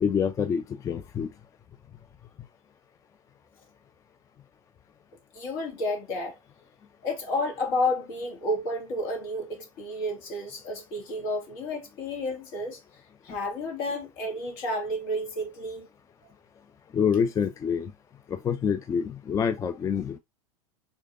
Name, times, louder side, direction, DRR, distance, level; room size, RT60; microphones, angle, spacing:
voice 1, 0.0-1.3 16.9-17.9 18.4-20.2, left 7 dB, 20° left, 0.4 m, -26 dB
voice 2, 5.3-6.3 7.0-12.8 13.2-15.9, left 1 dB, 50° left, 2.2 m, -31 dB
5.0 x 3.4 x 2.6 m
figure-of-eight pair, 85°, 18 cm